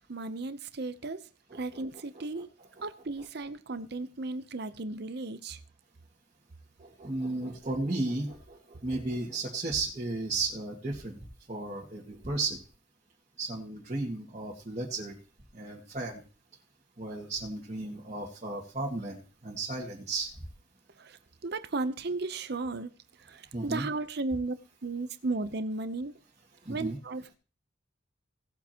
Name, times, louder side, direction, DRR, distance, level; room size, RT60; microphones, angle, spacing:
voice 1, 0.1-2.5 2.8-5.6 21.0-22.9 23.2-24.5 24.8-26.1 26.7-27.3, right 3 dB, 55° right, 0.8 m, -35 dB
voice 2, 1.5-1.8 2.1-2.4 2.8-2.9 6.8-11.1 11.5-12.6 13.4-15.1 15.5-16.2 17.0-20.3 23.5-23.9 26.6-27.0, right 2 dB, 35° right, 2.0 m, -34 dB
18.0 x 8.4 x 3.0 m
head